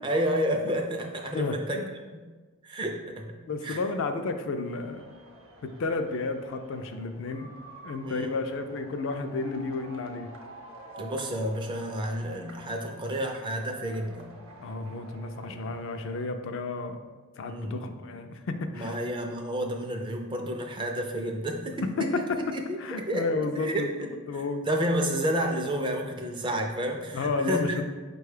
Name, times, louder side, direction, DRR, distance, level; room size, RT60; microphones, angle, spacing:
voice 1, 0.0-1.8 2.1-2.2 2.6-3.8 8.0-8.3 11.0-14.3 15.5-15.6 17.5-17.9 18.7-22.3 22.5-23.8 24.6-27.8, equal, 20° right, 3 dB, 0.4 m, -30 dB
voice 2, 1.3-1.9 3.5-5.0 5.6-7.5 7.8-10.3 14.6-17.0 17.4-19.0 22.0-22.4 22.8-24.7 27.1-27.8, left 3 dB, 60° left, 7 dB, 0.3 m, -32 dB
sound 1, 4.6-16.3, right 1 dB, 65° right, 0.7 m, -49 dB
4.8 x 2.3 x 4.8 m, 1.3 s
head